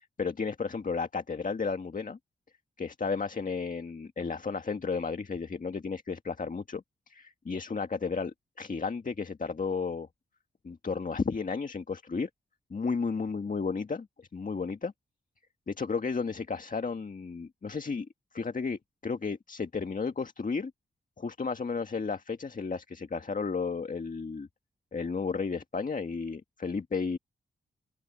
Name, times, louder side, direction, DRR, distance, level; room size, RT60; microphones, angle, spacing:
voice 1, 0.0-2.2 2.8-10.1 10.6-12.3 12.7-14.9 15.7-18.1 18.3-20.7 21.2-24.5 24.9-27.2, left 4 dB, 45° left, 1.7 m, -33 dB
open air
cardioid pair, 55°, 20 cm